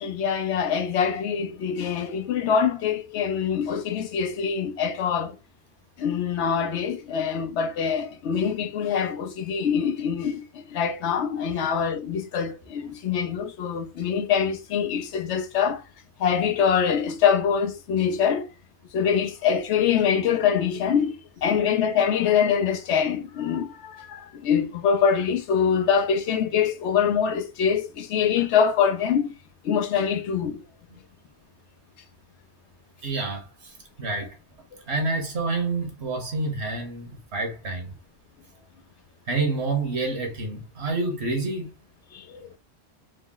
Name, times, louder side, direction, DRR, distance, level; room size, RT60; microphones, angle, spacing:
voice 1, 0.0-5.4 6.0-15.8 16.2-18.5 18.9-29.3 29.6-30.6 34.7-34.8 42.1-42.5, left 7 dB, 85° left, 1.0 m, -24 dB
voice 2, 33.0-34.4 34.9-37.9 39.3-41.7, right 3 dB, 75° right, 1.5 m, -28 dB
3.8 x 2.0 x 3.8 m
omnidirectional pair, 1.1 m